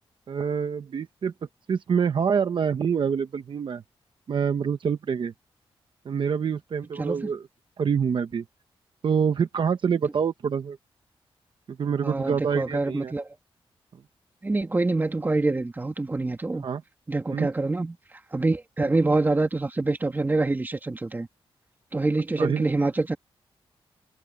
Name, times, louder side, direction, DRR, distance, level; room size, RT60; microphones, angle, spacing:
voice 1, 0.3-1.3 1.7-3.8 4.3-5.3 6.0-7.5 7.8-8.4 9.0-10.8 11.7-13.1 16.6-16.8 17.3-17.5 18.8-18.9 22.4-22.7, right 6 dB, 60° right, 1.0 m, -26 dB
voice 2, 7.0-7.3 12.0-13.3 14.4-16.7 17.1-18.0 18.3-21.3 21.9-23.2, right 2 dB, 20° right, 1.9 m, -26 dB
wide cardioid pair, 140°, 10 cm